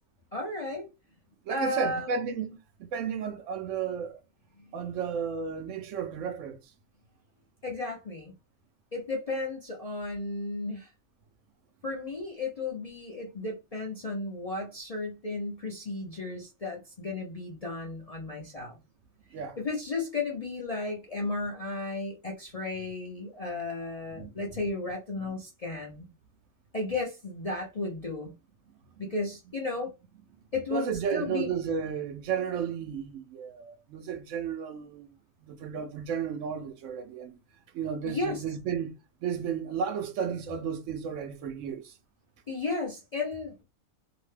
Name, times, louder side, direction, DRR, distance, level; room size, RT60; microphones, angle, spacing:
voice 1, 0.3-0.9 1.5-2.1 4.6-4.7 7.6-8.3 8.9-10.9 11.8-18.8 19.6-26.1 26.7-28.3 29.0-29.9 30.5-31.5 38.0-38.4 42.5-43.6, left 3 dB, 45° left, 0.5 m, -34 dB
voice 2, 1.5-4.2 4.7-6.6 19.3-19.6 24.2-24.3 30.7-35.1 35.4-37.4 37.7-38.9 39.2-42.0, right 7 dB, 70° right, 0.9 m, -33 dB
2.8 x 2.1 x 3.2 m
omnidirectional pair, 1.4 m